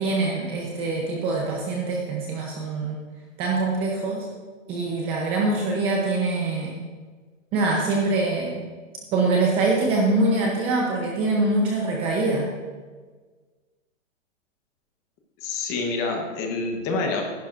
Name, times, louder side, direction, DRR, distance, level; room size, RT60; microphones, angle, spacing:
voice 1, 0.0-3.0 3.4-4.3 4.7-6.8 7.5-8.6 9.1-12.5, right 2 dB, 15° right, -1 dB, 0.8 m, -24 dB
voice 2, 15.4-17.2, left 3 dB, 20° left, 2 dB, 1.1 m, -27 dB
14.5 x 11.0 x 2.6 m, 1.4 s
hypercardioid pair, 165°, 38 cm